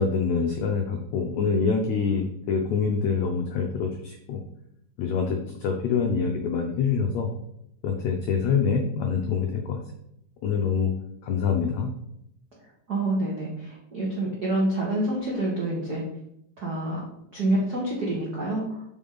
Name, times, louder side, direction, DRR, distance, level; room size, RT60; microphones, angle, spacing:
voice 1, 0.0-4.4 5.0-7.3 7.8-9.8 10.4-10.9 11.2-11.9, left 5 dB, 85° left, 3 dB, 1.6 m, -25 dB
voice 2, 12.9-16.0 16.6-17.0 17.3-18.8, right 1 dB, 75° right, -4 dB, 0.9 m, -27 dB
7.4 x 4.9 x 3.9 m, 0.78 s
omnidirectional pair, 4.0 m